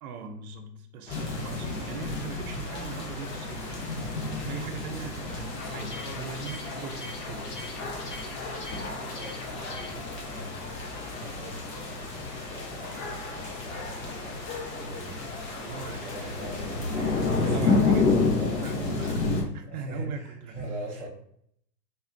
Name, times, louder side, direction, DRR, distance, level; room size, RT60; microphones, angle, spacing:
voice 1, 0.0-3.9 4.5-8.2 15.5-16.6 17.4-20.6, right 6 dB, 60° right, 6 dB, 0.7 m, -40 dB
sound 1, 1.1-19.4, left 3 dB, 90° left, 1.2 m, -31 dB
sound 2, 1.1-17.6, left 2 dB, 45° left, 1.0 m, -40 dB
sound 3, 5.6-10.0, left 2 dB, 65° left, 1.1 m, -41 dB
voice 2, 9.2-10.8 11.1-17.8 18.3-19.1 19.6-21.1, right 1 dB, ahead, -9 dB, 0.4 m, -42 dB
4.0 x 2.4 x 2.6 m, 0.68 s
hypercardioid pair, 115°, 49 cm